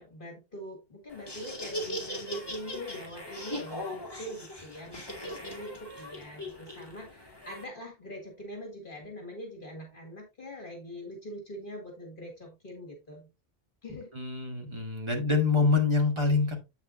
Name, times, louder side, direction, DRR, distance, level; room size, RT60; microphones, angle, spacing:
voice 1, 0.0-13.3 13.8-14.1, equal, 55° left, 2.1 m, -43 dB
Laughter, 1.1-7.6, left 1 dB, 25° left, 2.2 m, -39 dB
voice 2, 14.1-16.5, left 4 dB, 25° right, 1.8 m, -25 dB
8.1 x 7.2 x 2.6 m
omnidirectional pair, 1.1 m